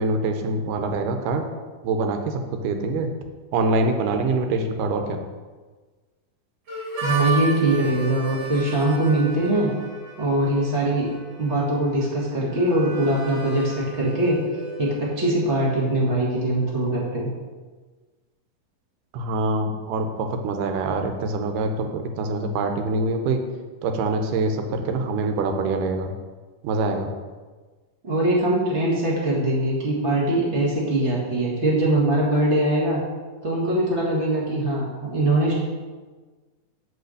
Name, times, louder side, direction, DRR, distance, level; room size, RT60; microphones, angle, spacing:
voice 1, 0.0-1.5 1.8-3.1 3.5-5.2 19.1-23.4 23.8-26.1 26.6-27.1, right 3 dB, 85° right, 5 dB, 2.4 m, -25 dB
Harmonica, 6.7-16.3, right 3 dB, 65° right, 3.2 m, -35 dB
voice 2, 7.0-9.7 10.2-11.1 11.4-14.4 14.8-17.3 28.0-33.0 33.4-35.6, right 1 dB, 30° right, -5 dB, 1.5 m, -22 dB
6.7 x 4.8 x 6.5 m, 1.3 s
omnidirectional pair, 3.7 m